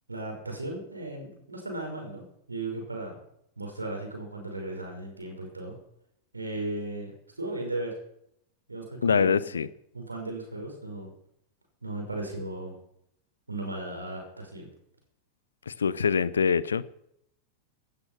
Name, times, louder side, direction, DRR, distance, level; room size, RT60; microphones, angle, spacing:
voice 1, 0.1-3.2 3.6-5.7 6.3-8.0 8.7-9.6 9.9-11.1 11.8-12.8 13.5-14.7, right 2 dB, 80° right, 2 dB, 5.7 m, -36 dB
voice 2, 9.0-9.7 15.7-16.8, left 6 dB, 70° left, 19 dB, 0.8 m, -24 dB
16.5 x 13.0 x 5.9 m, 0.73 s
figure-of-eight pair, 90°, 0 cm